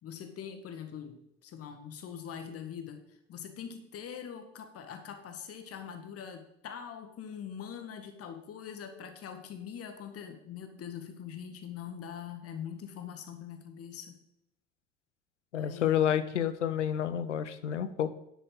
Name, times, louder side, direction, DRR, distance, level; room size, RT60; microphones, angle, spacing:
voice 1, 0.0-14.2 15.5-16.1, left 8 dB, 40° left, 7 dB, 1.7 m, -43 dB
voice 2, 15.5-18.1, left 9 dB, 80° left, 13 dB, 0.7 m, -29 dB
9.8 x 8.2 x 3.9 m, 0.81 s
figure-of-eight pair, 60°, 35 cm